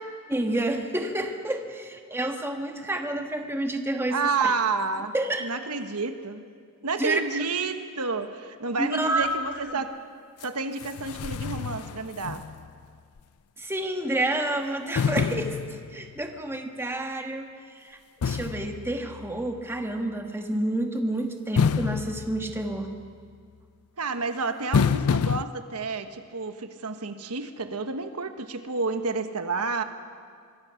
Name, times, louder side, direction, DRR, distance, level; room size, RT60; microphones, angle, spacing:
voice 1, 0.3-4.5 5.1-5.4 7.0-7.4 8.8-9.3 13.6-18.0 18.2-22.9, right 1 dB, 10° right, 4 dB, 1.4 m, -29 dB
voice 2, 4.1-5.1 5.4-6.4 6.8-9.9 10.4-12.4 24.0-29.8, right 4 dB, 85° right, 8 dB, 1.3 m, -30 dB
sound 1, 10.4-10.5 10.8-12.8 13.2-13.3 14.9-16.3 18.2-19.6 21.6-23.1 24.7-25.4, left 6 dB, 75° left, 0.4 m, -28 dB
23.5 x 23.5 x 5.8 m, 2.1 s
head